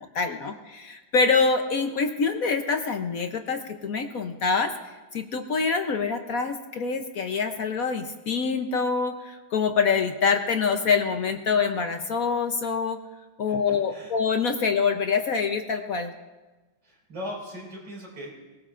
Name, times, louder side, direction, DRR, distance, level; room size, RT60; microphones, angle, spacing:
voice 1, 0.1-4.7 5.1-13.0 13.4-16.1, left 5 dB, 60° left, 5 dB, 1.0 m, -25 dB
voice 2, 16.8-18.4, left 1 dB, 80° right, -3 dB, 5.8 m, -38 dB
22.5 x 19.5 x 2.5 m, 1.2 s
omnidirectional pair, 2.1 m